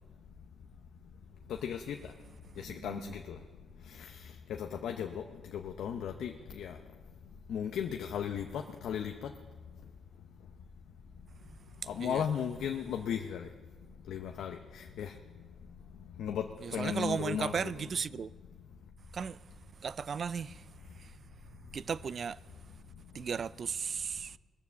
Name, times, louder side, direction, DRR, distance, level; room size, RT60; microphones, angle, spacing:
voice 1, 1.5-2.0 2.6-3.4 3.9-4.2 4.5-5.2 5.5-6.8 7.5-9.3 11.9-13.5 14.1-15.1 16.2-16.4 16.7-17.9, left 8 dB, 80° left, 0.7 m, -36 dB
voice 2, 2.7-3.1 12.0-12.2 16.6-18.3 19.1-19.4 19.8-20.6 21.7-22.4 23.1-24.4, right 6 dB, 50° right, 0.3 m, -35 dB
20.5 x 6.9 x 7.1 m
cardioid pair, 80°, 0 cm